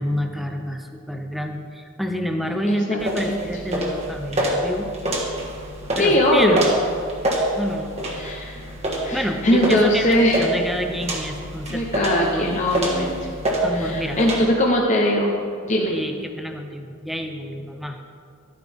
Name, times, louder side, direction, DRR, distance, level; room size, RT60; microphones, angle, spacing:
voice 1, 0.0-4.9 5.3-5.4 6.0-6.6 7.5-7.9 9.1-11.8 12.2-12.6 13.2-13.3 13.6-14.2 15.9-18.0, equal, ahead, 5 dB, 0.6 m, -28 dB
voice 2, 2.7-3.4 6.0-6.6 8.2-8.5 9.0-10.4 11.7-13.1 13.7-15.3 15.7-15.9, left 1 dB, 35° left, -1 dB, 0.8 m, -20 dB
sound 1, 3.0-14.4, right 1 dB, 30° right, 1.5 m, -27 dB
12.5 x 9.6 x 3.5 m, 2.3 s
head